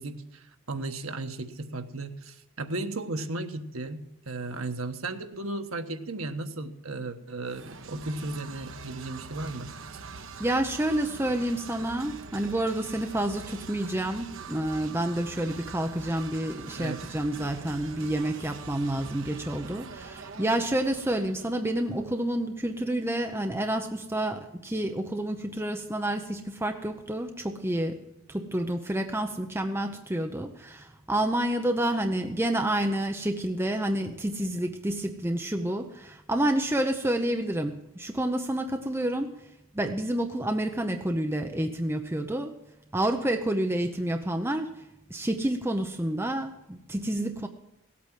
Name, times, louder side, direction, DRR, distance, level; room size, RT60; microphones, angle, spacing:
voice 1, 0.0-9.7 16.7-17.0, right 2 dB, 85° right, 7 dB, 1.3 m, -35 dB
sound 1, 7.4-22.1, right 4 dB, 65° right, 0.9 m, -44 dB
voice 2, 10.4-28.0 28.3-39.3 39.7-42.5 42.9-44.7 45.1-47.5, right 1 dB, 10° right, 5 dB, 0.7 m, -29 dB
17.0 x 8.5 x 7.5 m, 0.90 s
head